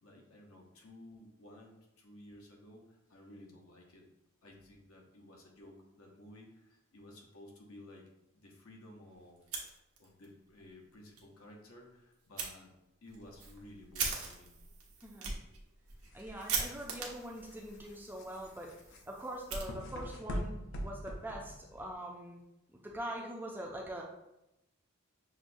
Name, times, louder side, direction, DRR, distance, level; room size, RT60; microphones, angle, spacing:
voice 1, 0.0-4.1 4.4-8.1 8.3-9.5 10.0-12.7 13.0-14.6, left 1 dB, 75° left, 0 dB, 0.8 m, -55 dB
Fire, 9.4-10.3 10.6-10.7 11.1-11.2 12.4-12.5 13.1-20.2, right 5 dB, 80° right, 0.8 m, -41 dB
voice 2, 15.0-15.4 16.1-18.7 19.1-20.6 20.8-22.4 22.7-24.0, right 1 dB, 10° right, -1 dB, 0.4 m, -43 dB
sound 1, 16.0-21.9, equal, 55° left, 0.4 m, -43 dB
6.1 x 2.1 x 2.6 m, 0.89 s
head